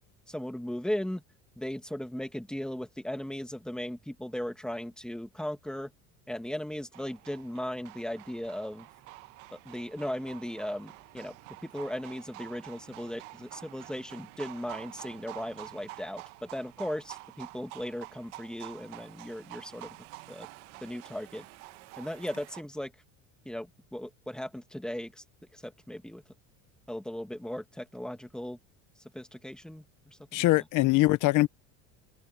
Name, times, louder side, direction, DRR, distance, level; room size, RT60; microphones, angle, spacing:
voice 1, 0.3-1.2 1.6-5.9 6.3-8.9 9.5-11.4 11.6-20.0 20.3-20.5 20.8-21.4 22.0-22.9 23.4-25.2 25.5-26.2 26.9-28.6 29.1-30.5, left 1 dB, ahead, 2.3 m, -37 dB
sound 1, 6.9-22.6, right 22 dB, 85° right, 1.5 m, -48 dB
voice 2, 30.3-31.5, left 19 dB, 60° left, 1.0 m, -23 dB
open air
supercardioid pair, 115°, 35 cm